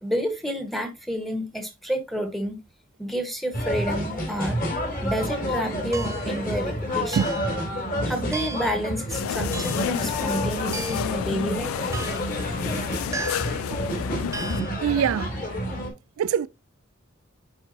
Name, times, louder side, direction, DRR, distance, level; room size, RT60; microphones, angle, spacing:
voice 1, 0.0-2.6 3.0-4.6 5.0-7.4 8.0-11.9, equal, ahead, 1.2 m, -29 dB
sound 1, 3.5-15.9, equal, 40° left, 3.2 m, -29 dB
sound 2, 5.9-6.4 7.1-7.6 8.3-8.8 9.5-9.9 10.7-11.2 11.9-12.4 13.1-13.6 14.3-14.7, right 4 dB, 15° right, 0.5 m, -35 dB
sound 3, 9.1-14.6, left 9 dB, 90° left, 0.3 m, -31 dB
voice 2, 14.8-15.4 16.2-16.5, right 8 dB, 85° right, 0.3 m, -24 dB
10.5 x 4.8 x 2.7 m
head